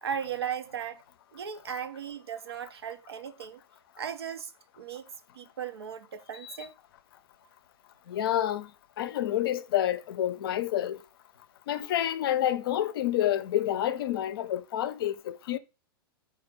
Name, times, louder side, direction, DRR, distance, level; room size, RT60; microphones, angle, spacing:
voice 1, 0.0-1.0 1.3-3.6 4.0-5.0 5.3-6.8, right 8 dB, 85° right, 0.5 m, -37 dB
voice 2, 8.1-8.7 9.0-11.0 11.7-15.6, left 12 dB, 65° left, 0.5 m, -28 dB
4.0 x 2.4 x 4.4 m
hypercardioid pair, 110°, 13 cm